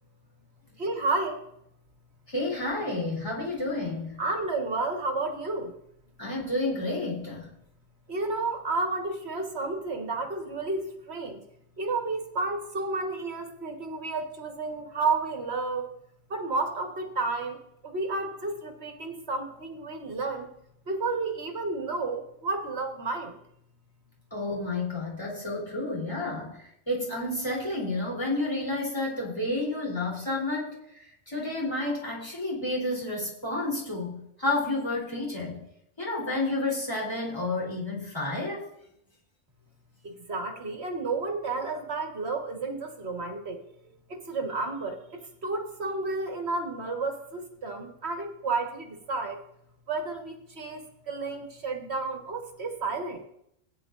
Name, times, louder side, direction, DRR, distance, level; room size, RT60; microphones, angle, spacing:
voice 1, 0.8-1.4 4.2-5.7 8.1-11.4 11.8-15.9 16.3-20.5 20.9-23.4 40.0-49.4 49.9-53.2, right 3 dB, 55° right, 3 dB, 1.7 m, -31 dB
voice 2, 2.3-4.2 6.2-7.5 24.3-35.6 36.0-38.7, left 2 dB, 20° left, -4 dB, 3.4 m, -30 dB
17.0 x 9.7 x 2.5 m, 0.76 s
omnidirectional pair, 1.3 m